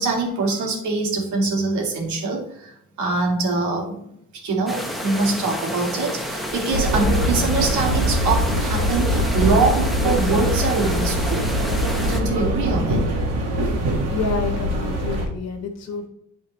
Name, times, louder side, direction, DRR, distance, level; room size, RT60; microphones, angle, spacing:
voice 1, 0.0-11.8 12.0-13.0, right 3 dB, 75° right, 1 dB, 2.3 m, -24 dB
sound 1, 4.7-12.2, equal, ahead, 0.9 m, -30 dB
sound 2, 6.7-15.3, equal, 60° right, 2.0 m, -22 dB
voice 2, 14.1-16.1, left 4 dB, 60° left, 5 dB, 1.5 m, -28 dB
11.5 x 4.4 x 3.2 m, 0.75 s
cardioid pair, 175°, 30 cm